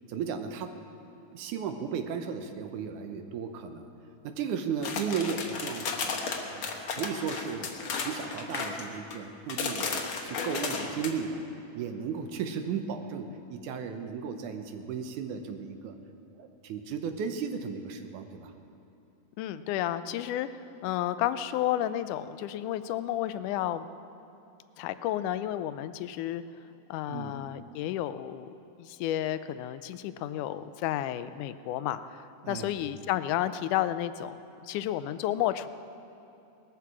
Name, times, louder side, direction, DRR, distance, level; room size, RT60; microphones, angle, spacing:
voice 1, 0.1-0.7 1.3-3.9 4.2-6.2 6.5-7.7 7.9-9.9 10.2-11.4 11.8-16.0 16.3-18.5 27.1-27.4 32.4-32.7, right 6 dB, 75° right, 7 dB, 2.4 m, -35 dB
sound 1, 4.8-9.2 9.5-11.1, left 5 dB, 55° left, 1.7 m, -34 dB
voice 2, 19.4-20.5 20.8-23.9 24.8-26.4 26.9-28.5 28.8-34.4 34.7-35.7, left 12 dB, 85° left, 13 dB, 2.1 m, -31 dB
19.0 x 14.0 x 4.8 m, 2.9 s
omnidirectional pair, 3.6 m